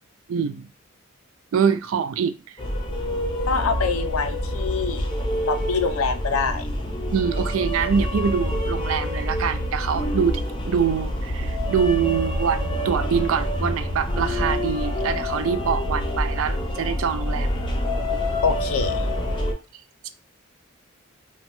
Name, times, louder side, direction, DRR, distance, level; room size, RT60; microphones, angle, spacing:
voice 1, 0.3-0.7 1.5-2.3 7.1-17.5, right 7 dB, 70° right, 0.3 m, -24 dB
sound 1, 2.6-19.5, equal, 20° left, 0.5 m, -26 dB
voice 2, 3.5-5.1 5.5-6.7 18.4-19.1, left 5 dB, 85° left, 0.5 m, -25 dB
2.9 x 2.2 x 2.9 m
head